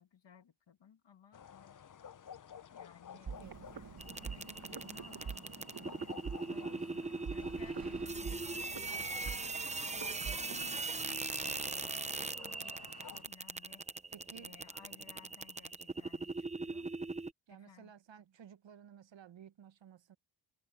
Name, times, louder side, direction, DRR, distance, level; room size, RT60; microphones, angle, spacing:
voice 1, 0.0-1.8 2.7-3.5 4.2-6.1 6.5-11.1 12.2-13.8 14.4-16.9 17.5-17.9, left 8 dB, 60° left, 2.0 m, -60 dB
sound 1, 1.3-13.2, left 8 dB, 40° left, 0.7 m, -54 dB
voice 2, 3.2-3.5 7.2-7.6 14.1-14.6 17.5-20.2, right 8 dB, 60° right, 1.0 m, -55 dB
sound 2, 3.3-10.8, right 6 dB, 45° right, 1.4 m, -46 dB
sound 3, 4.0-17.3, right 3 dB, 15° right, 0.6 m, -40 dB
wide cardioid pair, 105°, 49 cm